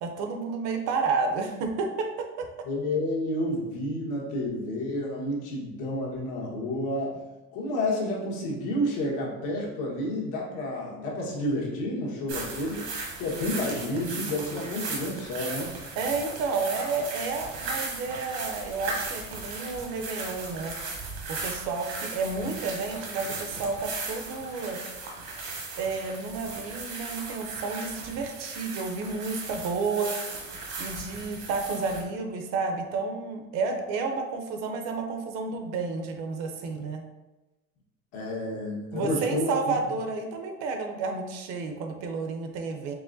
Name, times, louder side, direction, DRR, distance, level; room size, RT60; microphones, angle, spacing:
voice 1, 0.0-2.5 16.0-20.7 21.3-24.8 25.8-30.2 30.8-37.0 38.9-42.9, right 4 dB, 60° right, 5 dB, 0.6 m, -31 dB
voice 2, 2.6-7.2 7.5-12.8 13.2-15.7 38.1-39.7, left 1 dB, 80° left, -3 dB, 1.4 m, -30 dB
sound 1, 12.3-32.0, right 3 dB, 80° right, 1.3 m, -37 dB
4.7 x 3.3 x 2.6 m, 1.1 s
cardioid pair, 180°, 30 cm